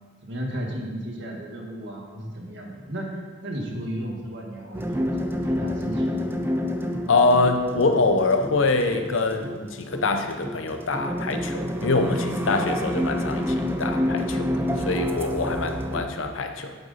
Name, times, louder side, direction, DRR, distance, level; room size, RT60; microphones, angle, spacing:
voice 1, 0.2-6.3, equal, 65° right, 0 dB, 1.6 m, -34 dB
sound 1, 4.7-16.0, equal, 10° right, 0.5 m, -28 dB
voice 2, 7.1-16.7, left 3 dB, 85° left, 7 dB, 0.8 m, -24 dB
8.8 x 8.0 x 4.1 m, 1.5 s
head